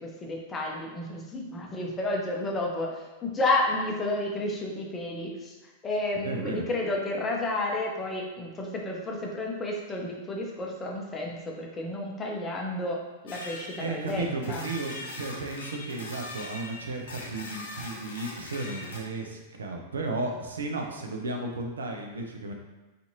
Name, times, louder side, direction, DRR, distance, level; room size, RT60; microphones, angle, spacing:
voice 1, 0.0-5.6 5.8-13.0 13.2-14.6, left 2 dB, 20° left, 0 dB, 0.5 m, -31 dB
voice 2, 6.2-6.7 13.8-22.5, right 2 dB, 75° right, 2 dB, 0.4 m, -34 dB
sound 1, 13.3-19.0, left 2 dB, 65° left, 0.6 m, -41 dB
2.6 x 2.5 x 2.7 m, 1.1 s
figure-of-eight pair, 95°, 0 cm